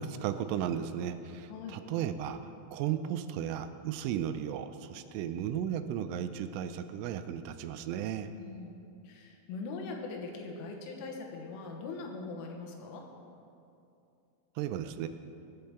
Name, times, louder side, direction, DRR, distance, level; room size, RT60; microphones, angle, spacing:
voice 1, 0.0-2.4 2.7-8.3 14.6-15.1, right 9 dB, 85° right, 9 dB, 3.0 m, -35 dB
voice 2, 8.4-8.7 9.1-13.1, left 4 dB, 90° left, 1 dB, 3.7 m, -41 dB
21.5 x 7.7 x 3.5 m, 2.6 s
omnidirectional pair, 5.6 m